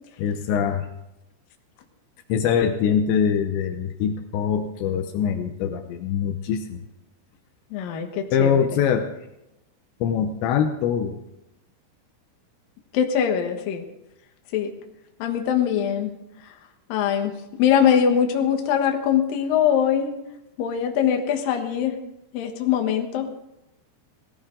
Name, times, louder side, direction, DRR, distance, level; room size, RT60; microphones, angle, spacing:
voice 1, 0.2-0.9 2.3-6.8 8.3-9.2 10.0-11.2, left 7 dB, 80° left, 6 dB, 3.0 m, -23 dB
voice 2, 7.7-8.7 12.9-13.8 14.5-14.7 15.2-16.1 16.4-16.5 16.9-17.3 17.6-20.1 20.6-21.9 22.3-23.3, left 8 dB, 65° left, 4 dB, 2.6 m, -22 dB
18.5 x 14.5 x 3.9 m, 0.89 s
omnidirectional pair, 5.3 m